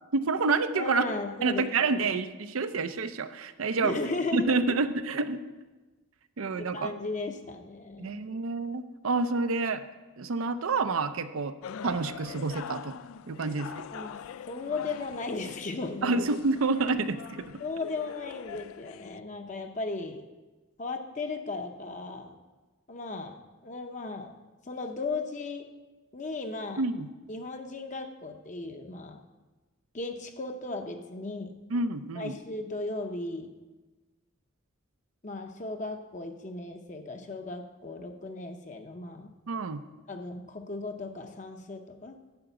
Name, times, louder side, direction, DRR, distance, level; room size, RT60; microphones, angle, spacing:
voice 1, 0.1-1.0 1.4-4.0 4.3-5.4 6.4-6.9 8.0-9.8 10.2-11.5 11.8-13.0 13.3-13.7 16.0-17.4 26.8-27.1 31.7-32.3 39.5-39.8, right 3 dB, 85° right, 11 dB, 0.6 m, -28 dB
voice 2, 0.7-2.2 3.8-4.6 6.7-8.2 13.9-16.3 17.6-20.3 20.8-22.4 22.9-23.4 23.6-24.3 24.7-25.7 26.1-26.8 27.3-29.2 29.9-31.6 32.1-33.5 35.2-39.3 40.1-42.1, left 3 dB, 35° left, 5 dB, 0.7 m, -36 dB
sound 1, 11.6-19.2, left 8 dB, 80° left, 0.3 m, -44 dB
11.5 x 4.8 x 8.0 m, 1.2 s
head